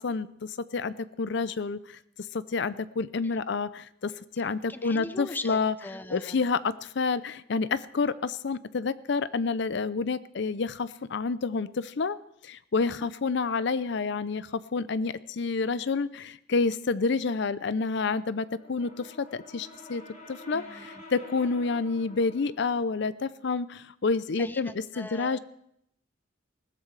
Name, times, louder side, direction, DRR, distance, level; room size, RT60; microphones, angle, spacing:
voice 1, 0.0-2.0 2.3-4.1 4.4-5.7 6.1-12.2 12.4-20.0 20.3-25.4, left 4 dB, 60° left, 16 dB, 0.6 m, -29 dB
voice 2, 4.4-6.5 12.9-13.0 20.5-21.0 24.4-25.4, left 2 dB, 10° left, 12 dB, 0.6 m, -41 dB
Brass instrument, 18.4-22.6, left 1 dB, 40° left, 4.9 m, -48 dB
20.5 x 15.5 x 3.3 m, 0.74 s
head